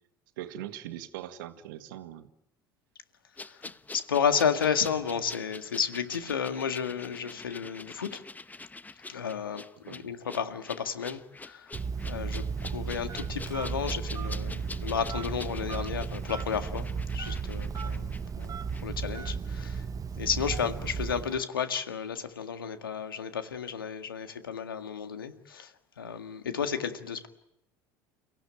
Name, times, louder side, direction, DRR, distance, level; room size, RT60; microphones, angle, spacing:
voice 1, 0.4-2.3 9.9-10.1, right 12 dB, 70° right, 9 dB, 1.8 m, -41 dB
sound 1, 3.4-18.8 19.1-19.2, left 3 dB, 15° left, 1.1 m, -46 dB
voice 2, 3.9-8.2 9.1-11.7 12.0-16.9 17.1-19.9 20.2-27.3, left 7 dB, 85° left, 8 dB, 1.9 m, -32 dB
Telephone, 11.7-21.4, right 5 dB, 30° right, 1.0 m, -34 dB
30.0 x 16.5 x 9.2 m, 0.84 s
figure-of-eight pair, 70°, 11 cm